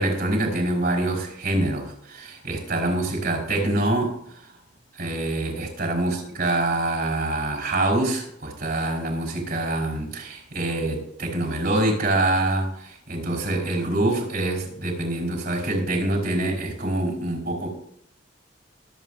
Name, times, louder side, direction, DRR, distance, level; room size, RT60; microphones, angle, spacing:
voice 1, 0.0-4.5 4.9-17.7, right 2 dB, 60° right, 1 dB, 4.9 m, -25 dB
24.5 x 8.5 x 2.7 m, 0.70 s
head